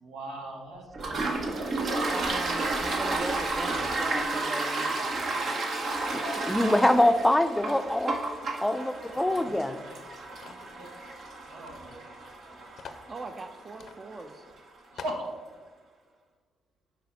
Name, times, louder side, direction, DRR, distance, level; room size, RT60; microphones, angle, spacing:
voice 1, 0.0-2.3 9.2-9.5 9.9-10.0 10.4-10.9 11.5-12.0 12.4-12.7 14.9-15.3, right 1 dB, 90° right, 0 dB, 1.2 m, -40 dB
Toilet flush, 0.9-14.3, right 2 dB, 65° right, 1.1 m, -32 dB
voice 2, 2.1-5.6 13.1-14.5, right 3 dB, 40° right, 8 dB, 0.6 m, -39 dB
voice 3, 6.1-8.2 8.6-9.8, left 1 dB, 10° left, 9 dB, 0.5 m, -24 dB
sound 1, 10.4-10.7 11.6-11.7 12.0-12.1 12.8-13.1 13.8-14.0 14.4-14.5 15.0-15.3, left 6 dB, 70° left, 0.5 m, -44 dB
6.7 x 4.2 x 4.6 m, 1.5 s
supercardioid pair, 55°, 0 cm